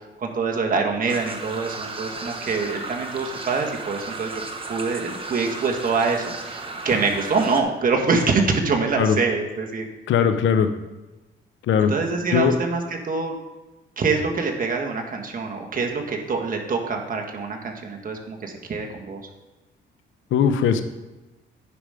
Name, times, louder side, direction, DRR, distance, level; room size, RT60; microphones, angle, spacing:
voice 1, 0.2-4.4 4.7-9.8 11.9-13.4 14.0-19.2, right 4 dB, 45° right, 2 dB, 1.6 m, -25 dB
sound 1, 1.1-7.6, right 3 dB, 25° right, 1.2 m, -35 dB
voice 2, 10.1-10.7 11.7-11.9 12.3-12.6 20.3-20.8, left 7 dB, 75° left, 9 dB, 0.8 m, -19 dB
10.0 x 5.1 x 5.0 m, 1.1 s
cardioid pair, 90°, 20 cm